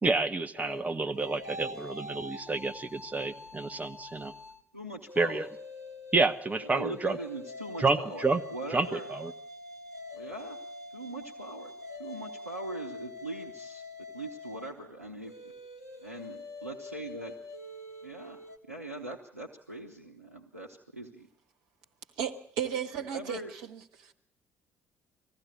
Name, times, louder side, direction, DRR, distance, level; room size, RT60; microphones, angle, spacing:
voice 1, 0.0-4.3 5.2-5.5 6.1-7.2 7.8-8.4 8.7-9.3, right 3 dB, 20° right, 7 dB, 1.2 m, -29 dB
sound 1, 0.6-4.6 5.0-18.6, left 3 dB, 85° left, 1.3 m, -45 dB
voice 2, 4.7-5.4 6.6-9.1 10.1-10.6 10.9-11.7 12.0-13.8 14.1-15.5 16.0-17.3 18.0-18.4 18.7-21.3 23.0-23.5, right 2 dB, 85° right, 0 dB, 1.0 m, -41 dB
voice 3, 22.2-23.4 23.7-24.1, right 9 dB, 60° right, 5 dB, 1.5 m, -34 dB
20.5 x 15.0 x 8.7 m, 0.64 s
figure-of-eight pair, 50°, 8 cm